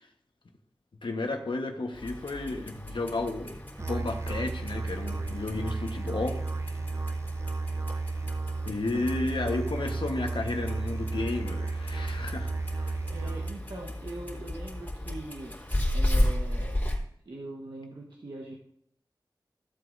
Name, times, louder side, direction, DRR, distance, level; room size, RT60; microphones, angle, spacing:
voice 1, 1.0-3.6 3.9-6.4 8.6-12.5, left 2 dB, 85° left, 4 dB, 1.3 m, -32 dB
Clock, 1.9-17.0, left 1 dB, 20° left, 3.3 m, -34 dB
Musical instrument, 3.8-13.8, right 3 dB, 35° right, 0.4 m, -33 dB
voice 2, 12.7-15.6 15.9-16.7 17.2-18.5, right 2 dB, 75° right, -2 dB, 1.5 m, -42 dB
15.0 x 7.9 x 2.7 m, 0.70 s
wide cardioid pair, 70°, 8 cm